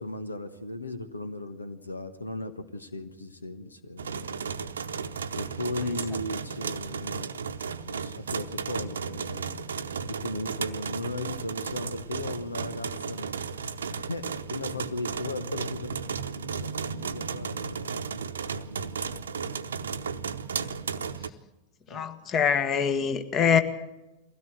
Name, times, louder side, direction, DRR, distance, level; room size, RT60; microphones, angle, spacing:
voice 1, 0.0-4.6 5.4-7.3 7.8-9.6 10.1-13.4 13.9-19.8 21.9-22.3, left 2 dB, 80° left, 11 dB, 1.3 m, -37 dB
sound 1, 4.0-21.3, right 6 dB, 70° right, 0.9 m, -34 dB
voice 2, 21.9-23.6, left 7 dB, 30° left, 10 dB, 1.6 m, -24 dB
23.0 x 16.5 x 7.8 m, 1.0 s
figure-of-eight pair, 90°, 0 cm